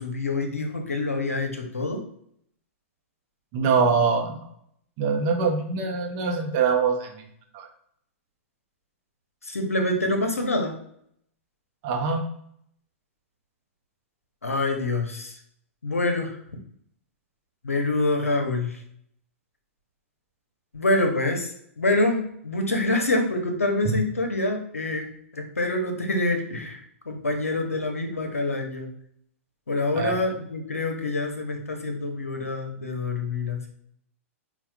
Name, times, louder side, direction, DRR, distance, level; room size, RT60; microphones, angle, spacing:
voice 1, 0.0-2.0 9.4-10.7 14.4-15.4 15.8-16.4 17.6-18.8 20.7-26.8 27.1-28.9 29.7-33.7, left 2 dB, 85° left, 4 dB, 0.7 m, -26 dB
voice 2, 3.5-4.4 5.0-7.3 7.5-7.7 11.8-12.2 23.8-23.9 29.9-30.2, right 5 dB, 40° right, 3 dB, 0.7 m, -23 dB
5.5 x 2.4 x 2.3 m, 0.68 s
figure-of-eight pair, 105°, 7 cm